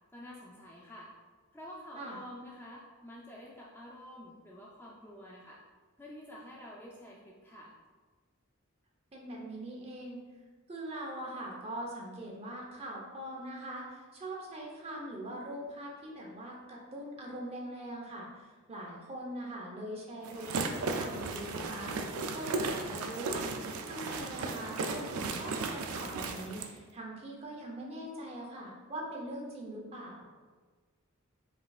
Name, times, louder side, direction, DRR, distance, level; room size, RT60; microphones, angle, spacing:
voice 1, 0.1-1.1 1.5-5.6 6.0-7.7, left 1 dB, 10° left, -4 dB, 0.4 m, -49 dB
voice 2, 9.1-10.2 10.7-23.5 23.8-30.3, right 1 dB, 30° right, -2 dB, 0.7 m, -42 dB
sound 1, 20.2-26.7, right 3 dB, 85° right, 0.4 m, -35 dB
5.1 x 3.3 x 2.4 m, 1.4 s
head